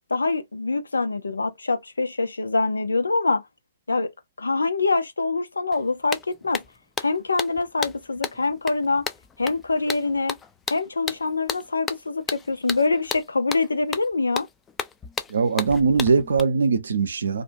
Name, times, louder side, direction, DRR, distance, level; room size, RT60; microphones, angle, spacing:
voice 1, 0.1-3.4 3.9-4.1 4.4-6.2 6.4-6.6 7.0-9.0 9.4-10.4 10.7-14.5, left 3 dB, 90° left, 0.7 m, -24 dB
sound 1, 5.7-5.8 6.1-16.4, left 6 dB, 20° left, 0.4 m, -33 dB
voice 2, 15.3-17.4, right 5 dB, 80° right, 0.6 m, -21 dB
2.6 x 2.3 x 2.6 m
hypercardioid pair, 115°, 0 cm